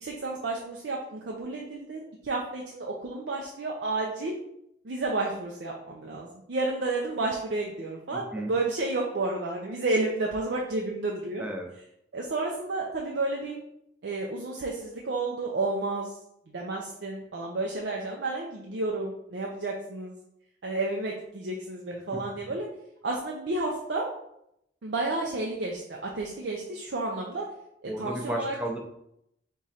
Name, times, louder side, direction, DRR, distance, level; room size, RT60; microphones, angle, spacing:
voice 1, 0.0-4.3 4.8-11.4 12.1-13.6 14.0-16.2 16.5-20.1 20.6-22.7 23.0-24.1 24.8-27.4 27.8-28.5, right 2 dB, 75° right, -1 dB, 0.6 m, -31 dB
voice 2, 8.1-8.5 11.4-11.7 22.1-22.2 27.9-28.8, right 1 dB, 5° right, 1 dB, 0.6 m, -33 dB
3.7 x 3.0 x 4.1 m, 0.78 s
head